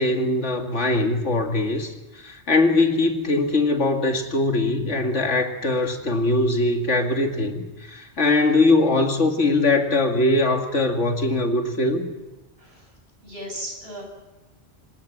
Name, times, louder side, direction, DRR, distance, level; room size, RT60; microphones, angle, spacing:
voice 1, 0.0-1.9 2.2-7.6 7.9-12.1, left 2 dB, 85° left, 4 dB, 2.6 m, -21 dB
voice 2, 12.6-12.9 13.2-14.0, equal, 60° right, 0 dB, 7.9 m, -37 dB
26.0 x 18.0 x 7.3 m, 1.1 s
omnidirectional pair, 1.2 m